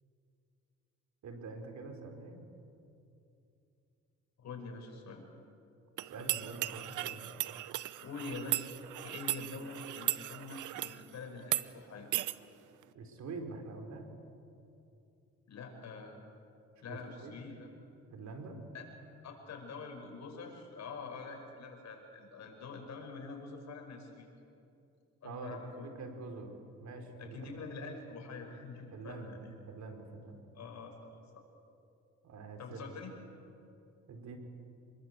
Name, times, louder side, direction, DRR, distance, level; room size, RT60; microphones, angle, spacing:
voice 1, 1.2-2.5 6.0-7.3 12.9-14.1 16.9-17.4 18.1-18.6 25.2-27.5 28.9-29.4 29.7-30.4 32.2-32.8 34.1-34.4, right 3 dB, 65° right, 5 dB, 4.3 m, -45 dB
voice 2, 4.4-5.3 8.0-8.7 9.0-12.1 15.5-16.2 16.8-17.7 18.7-18.9 19.2-24.3 25.2-25.9 27.2-29.6 30.5-31.4 32.6-33.1, left 4 dB, 65° left, 3 dB, 5.8 m, -45 dB
sound 1, 6.0-11.0 11.4-11.7 12.1-12.4, right 15 dB, 80° right, 0.8 m, -36 dB
27.5 x 21.5 x 8.1 m, 2.7 s
cardioid pair, 90°, 30 cm